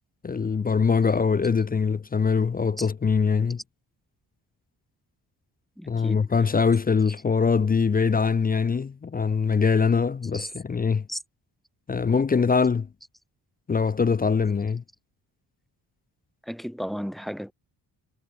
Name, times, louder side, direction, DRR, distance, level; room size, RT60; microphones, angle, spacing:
voice 1, 0.2-3.6 5.9-11.0 11.9-12.9 13.7-14.8, left 5 dB, 20° left, 0.5 m, -23 dB
voice 2, 5.8-6.6 7.1-7.2 10.3-10.5 11.1-11.2 16.4-17.5, equal, ahead, 5.3 m, -35 dB
supercardioid pair, 60°, 42 cm